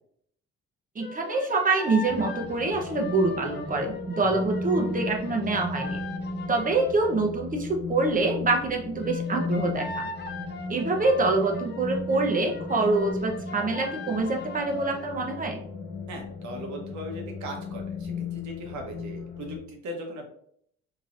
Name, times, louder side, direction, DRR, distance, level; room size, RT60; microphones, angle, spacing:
sound 1, 1.0-7.2 9.0-15.2, left 3 dB, 35° left, 0.5 m, -39 dB
voice 1, 1.0-6.0 6.5-10.1 10.7-15.6, right 3 dB, 25° right, 2 dB, 0.7 m, -26 dB
sound 2, 2.1-19.6, left 2 dB, 85° left, 1.5 m, -36 dB
voice 2, 4.2-4.5 16.1-20.2, right 1 dB, 70° right, 1 dB, 1.0 m, -39 dB
3.1 x 2.9 x 2.5 m, 0.66 s
cardioid pair, 90°, 30 cm